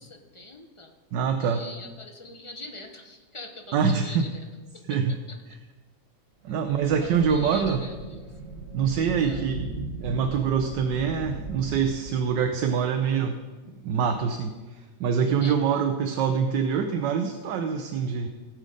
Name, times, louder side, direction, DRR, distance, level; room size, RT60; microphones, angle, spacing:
voice 1, 0.0-0.9 1.4-4.5 4.9-5.0 5.3-5.4 6.5-6.6 7.0-8.3 9.2-9.5 15.4-15.6, left 2 dB, 25° left, 3 dB, 0.8 m, -42 dB
voice 2, 1.1-1.7 3.7-4.3 4.9-5.2 6.4-7.8 8.7-13.4 13.8-14.6 15.0-18.3, right 6 dB, 75° right, 6 dB, 1.4 m, -25 dB
sound 1, 6.5-12.6, right 2 dB, 50° right, 1.6 m, -37 dB
17.0 x 6.4 x 5.1 m, 1.3 s
omnidirectional pair, 1.9 m